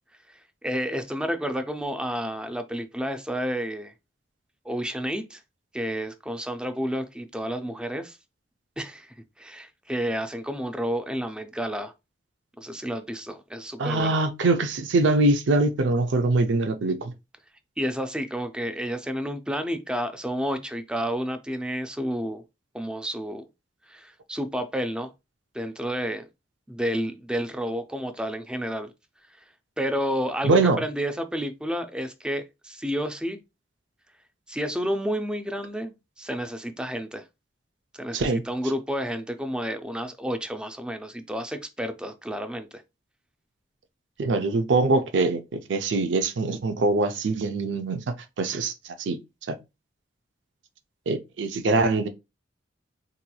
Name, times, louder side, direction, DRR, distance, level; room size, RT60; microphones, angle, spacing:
voice 1, 0.3-3.9 4.7-5.4 5.7-8.2 8.8-11.9 12.6-14.2 17.8-22.4 22.7-23.4 23.9-25.1 25.5-26.3 26.7-28.9 29.8-33.4 34.5-37.2 37.9-42.8, equal, 5° right, 0.3 m, -30 dB
voice 2, 13.8-17.1 30.4-30.8 38.1-38.4 44.2-48.7 49.0-49.2 49.5-49.6 51.1-52.1, right 3 dB, 85° right, 0.5 m, -23 dB
3.8 x 2.9 x 2.2 m
head